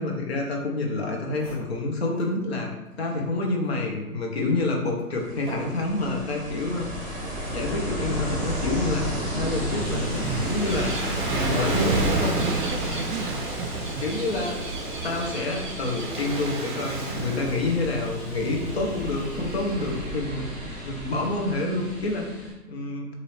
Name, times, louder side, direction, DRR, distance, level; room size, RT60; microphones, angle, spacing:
voice 1, 0.0-2.7 3.0-6.9 7.5-9.1 9.3-12.4 14.0-14.6 15.0-20.4 20.8-23.1, left 2 dB, 45° left, 1 dB, 0.8 m, -28 dB
sound 1, 1.0-1.1 1.3-2.4 2.8-3.0 3.6-6.2 7.0-7.3, right 1 dB, 15° right, 1.2 m, -45 dB
Ocean, 5.1-22.5, equal, 5° left, 1.1 m, -34 dB
Gull seagull / Waves surf, 9.4-20.0, right 2 dB, 35° right, 0.8 m, -31 dB
voice 2, 11.9-14.0, right 5 dB, 80° right, 9 dB, 0.5 m, -34 dB
4.1 x 2.7 x 3.2 m, 1.1 s
hypercardioid pair, 160°, 46 cm